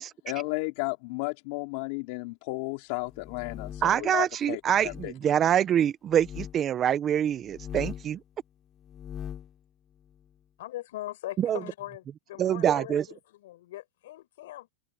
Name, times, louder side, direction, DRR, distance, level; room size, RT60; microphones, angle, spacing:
voice 1, 0.2-5.1, left 26 dB, 55° left, 3.3 m, -33 dB
sound 1, 3.1-4.0 4.8-5.1 6.1-6.6 7.4-8.2 8.8-9.5, left 10 dB, 25° left, 4.1 m, -40 dB
voice 2, 3.8-8.2 11.4-11.6 12.4-13.0, right 10 dB, 25° right, 0.9 m, -25 dB
voice 3, 10.6-14.7, left 15 dB, 70° left, 6.6 m, -41 dB
supercardioid pair, 140°, 0 cm